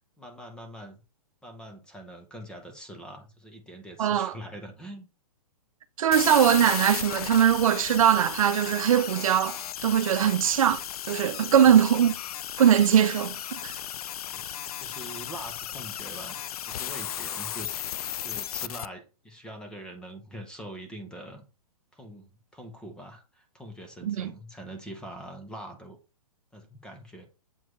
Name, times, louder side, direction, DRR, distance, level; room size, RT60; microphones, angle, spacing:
voice 1, 0.2-1.0 1.4-5.1 11.6-11.7 14.3-16.4 16.7-17.8 18.2-21.5 21.9-22.3 22.5-26.0 26.5-27.2, right 1 dB, 5° left, 0.7 m, -43 dB
voice 2, 4.0-4.4 6.0-12.1 12.6-13.8 24.0-24.3, right 9 dB, 65° right, 0.6 m, -21 dB
sound 1, 6.1-18.9, left 10 dB, 75° left, 0.4 m, -35 dB
7.6 x 4.6 x 3.1 m
hypercardioid pair, 160°, 19 cm